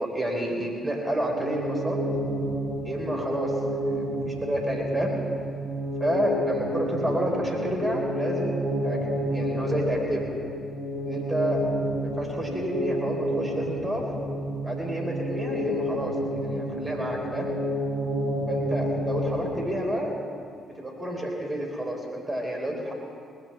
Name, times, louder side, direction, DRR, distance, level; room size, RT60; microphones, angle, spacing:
voice 1, 0.0-2.0 2.8-5.1 6.0-9.0 9.3-10.2 10.9-11.6 12.0-14.0 14.6-17.5 18.5-20.1 20.8-22.9, right 1 dB, 20° right, 0 dB, 4.3 m, -29 dB
sound 1, 1.2-20.0, equal, 55° right, 3.0 m, -30 dB
19.5 x 8.3 x 7.4 m, 2.3 s
figure-of-eight pair, 45°, 0 cm